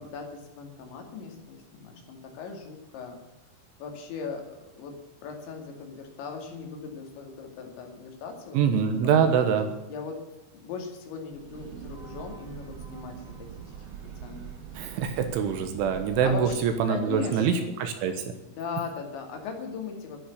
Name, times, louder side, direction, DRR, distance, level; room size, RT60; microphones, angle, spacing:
voice 1, 0.0-3.2 3.8-9.3 9.9-10.3 10.5-13.7 14.2-14.5 14.7-15.1 16.2-16.6 16.9-17.7 18.6-20.2, left 5 dB, 65° left, 3 dB, 4.6 m, -39 dB
voice 2, 8.5-9.7 14.8-18.3, right 7 dB, 75° right, 7 dB, 3.4 m, -24 dB
Breathing / Train, 11.3-16.8, right 7 dB, 60° right, 2.3 m, -43 dB
12.0 x 11.0 x 8.2 m, 0.97 s
omnidirectional pair, 6.0 m